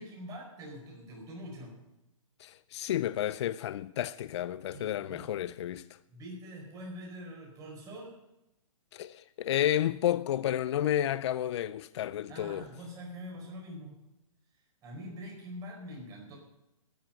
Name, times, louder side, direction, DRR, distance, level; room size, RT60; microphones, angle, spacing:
voice 1, 0.0-1.7 4.7-5.3 6.1-8.2 12.3-14.0 14.8-16.4, equal, 20° right, 4.9 m, -44 dB
voice 2, 2.4-5.9 8.9-12.6, left 11 dB, 55° left, 0.4 m, -31 dB
13.5 x 7.3 x 8.8 m
hypercardioid pair, 155°, 17 cm